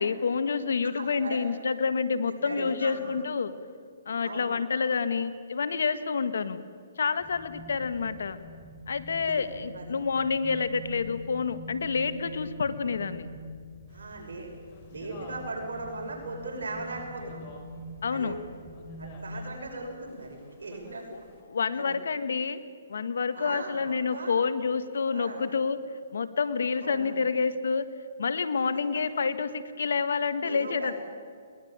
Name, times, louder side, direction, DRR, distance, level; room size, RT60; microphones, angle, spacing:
voice 1, 0.0-3.5 4.0-6.6 7.0-8.4 8.9-13.3 18.0-18.4 21.1-21.2 21.5-22.6 22.9-25.8 26.1-27.9 28.2-30.9, left 5 dB, 75° left, 12 dB, 1.6 m, -28 dB
voice 2, 1.0-1.4 2.3-3.0 4.2-4.5 9.7-10.0 13.9-14.5 14.9-17.4 18.1-18.4 19.0-21.3 21.7-22.0 23.3-24.3 25.1-25.4 26.8-27.1 30.4-30.9, right 3 dB, 85° right, 1 dB, 6.1 m, -38 dB
sound 1, 7.2-19.4, equal, ahead, 4.7 m, -45 dB
sound 2, 13.9-21.4, left 3 dB, 35° left, 4.7 m, -52 dB
21.5 x 19.5 x 8.8 m, 2.1 s
hypercardioid pair, 150°, 0 cm